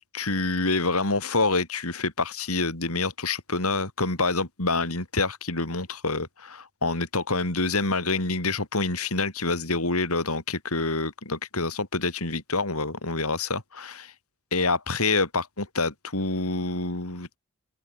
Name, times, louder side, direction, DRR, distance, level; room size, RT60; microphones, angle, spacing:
voice 1, 0.1-14.1 14.5-17.4, left 3 dB, 75° left, 4.4 m, -27 dB
head